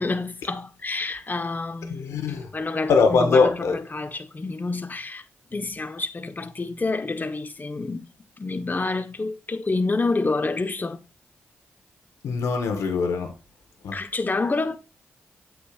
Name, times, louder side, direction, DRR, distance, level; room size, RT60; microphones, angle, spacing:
voice 1, 0.0-2.2 2.5-5.2 5.5-8.1 8.4-11.0 13.9-14.8, left 3 dB, 35° left, 1.2 m, -28 dB
voice 2, 1.9-2.5 2.9-3.8 12.2-13.3 13.8-13.9, left 4 dB, 80° left, 1.4 m, -21 dB
8.5 x 7.7 x 2.5 m
supercardioid pair, 40°, 5 cm